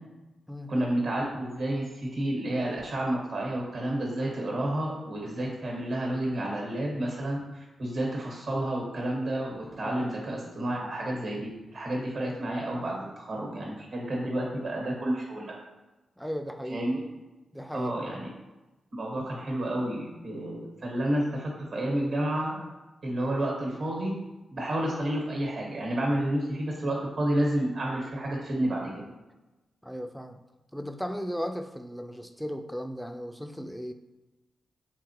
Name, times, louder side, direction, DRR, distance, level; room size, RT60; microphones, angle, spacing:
voice 1, 0.7-15.6 16.7-17.1 17.7-18.3 19.0-22.6 23.0-24.1 24.5-29.0, right 1 dB, 65° right, -1 dB, 1.2 m, -30 dB
voice 2, 16.2-16.9 17.5-18.2 29.8-30.4 30.7-33.9, equal, ahead, 7 dB, 0.3 m, -36 dB
3.7 x 2.8 x 2.9 m, 1.1 s
cardioid pair, 55°, 0 cm